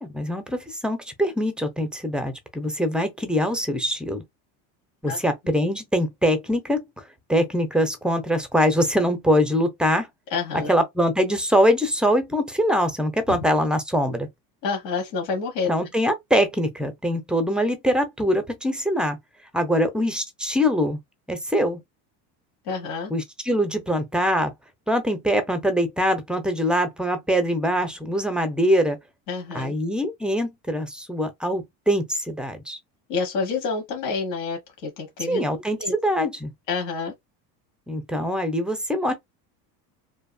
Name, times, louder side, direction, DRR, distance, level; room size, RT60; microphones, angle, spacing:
voice 1, 0.0-4.2 5.0-6.8 7.3-10.1 10.7-14.3 15.7-19.2 19.5-21.0 21.3-21.8 23.1-24.5 24.9-29.0 29.5-32.8 35.3-36.5 37.9-39.1, equal, ahead, 0.4 m, -23 dB
voice 2, 10.3-10.7 13.3-13.4 14.6-15.7 22.6-23.1 29.3-29.7 33.1-35.4 35.8-35.9 36.7-37.1, left 4 dB, 75° left, 1.3 m, -28 dB
2.7 x 2.3 x 2.2 m
supercardioid pair, 100°, 47 cm